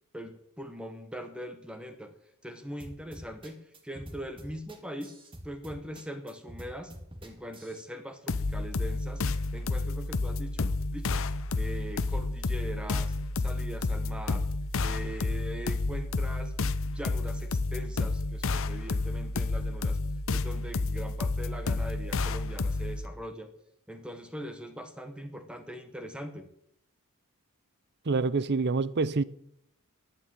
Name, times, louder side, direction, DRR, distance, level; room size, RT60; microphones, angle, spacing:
voice 1, 0.1-2.1 2.4-5.1 5.4-6.9 7.2-9.2 9.5-11.2 11.5-14.5 14.8-16.5 16.9-20.0 20.3-23.5 23.9-26.5, equal, 5° right, 1.2 m, -41 dB
sound 1, 2.8-7.8, right 1 dB, 25° right, 2.0 m, -47 dB
sound 2, 8.3-23.1, left 3 dB, 65° left, 0.7 m, -30 dB
voice 2, 28.1-29.2, right 4 dB, 50° right, 0.6 m, -26 dB
12.0 x 8.9 x 9.0 m
head